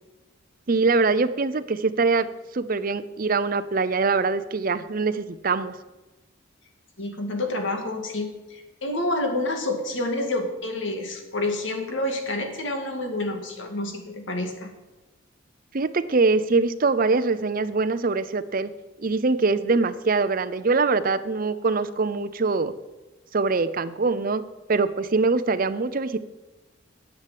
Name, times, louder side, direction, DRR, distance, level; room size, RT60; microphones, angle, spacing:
voice 1, 0.7-2.3 2.5-5.7 15.7-18.7 19.0-22.7 23.3-24.4 24.7-26.2, right 4 dB, 45° right, 13 dB, 0.6 m, -23 dB
voice 2, 7.0-14.7, left 2 dB, 70° left, 4 dB, 2.1 m, -28 dB
10.5 x 7.5 x 7.6 m, 1.1 s
head